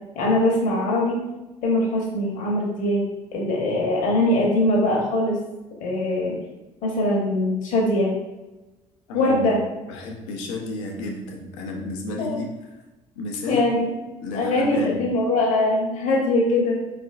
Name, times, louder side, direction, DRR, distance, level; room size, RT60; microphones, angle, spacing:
voice 1, 0.1-1.2 1.6-5.4 5.8-6.3 6.8-8.1 9.1-9.6 12.2-12.4 13.5-14.0 14.3-16.8, left 1 dB, 55° left, -2 dB, 1.1 m, -22 dB
voice 2, 9.1-9.5 9.9-12.5 13.2-13.6 14.2-15.0, left 2 dB, 75° left, 1 dB, 0.7 m, -32 dB
4.5 x 3.3 x 2.5 m, 1.0 s
hypercardioid pair, 55°, 16 cm